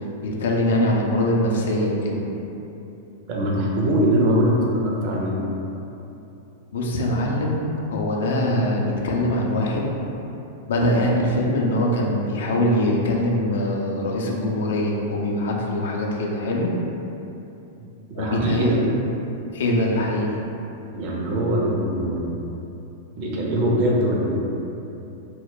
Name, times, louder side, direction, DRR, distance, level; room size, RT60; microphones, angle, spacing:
voice 1, 0.2-2.2 6.7-7.6 7.9-9.9 10.7-16.7 18.1-18.7 19.5-20.3, left 1 dB, 65° left, -1 dB, 0.4 m, -22 dB
voice 2, 3.3-5.4 17.8-17.9 18.2-18.8 20.9-22.4 23.2-24.5, equal, 45° right, -3 dB, 0.5 m, -22 dB
2.2 x 2.1 x 3.6 m, 2.9 s
figure-of-eight pair, 95°, 0 cm